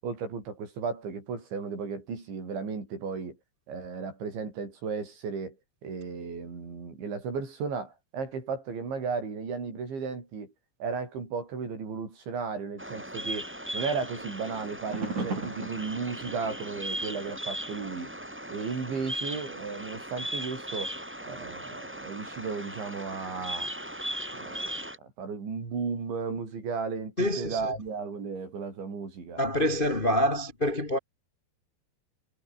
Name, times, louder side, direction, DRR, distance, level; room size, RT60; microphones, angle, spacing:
voice 1, 0.0-3.4 3.7-5.6 5.8-10.5 10.8-18.1 18.5-20.9 21.3-23.7 24.4-24.8 25.2-29.4, right 5 dB, 85° right, 9.5 m, -35 dB
Bird vocalization bird call bird song, 12.8-25.0, equal, 5° right, 2.3 m, -38 dB
sound 1, 14.9-20.5 20.9-22.8 23.5-23.6, right 4 dB, 40° right, 7.8 m, -40 dB
voice 2, 27.2-27.7 29.4-31.0, equal, 85° left, 0.4 m, -26 dB
omnidirectional pair, 5.2 m